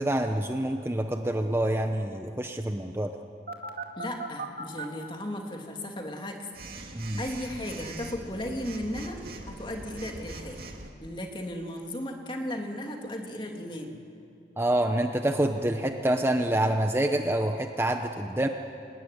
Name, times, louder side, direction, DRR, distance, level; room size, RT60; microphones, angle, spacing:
voice 1, 0.0-3.1 6.9-7.2 14.6-18.5, right 1 dB, 15° right, 5 dB, 0.9 m, -27 dB
Telephone, 3.5-4.8 6.5-10.9, right 3 dB, 55° right, 2.3 m, -40 dB
voice 2, 4.0-6.5 7.2-10.6 11.0-13.9, left 1 dB, 30° left, 2 dB, 2.6 m, -35 dB
25.0 x 20.0 x 9.8 m, 2.5 s
head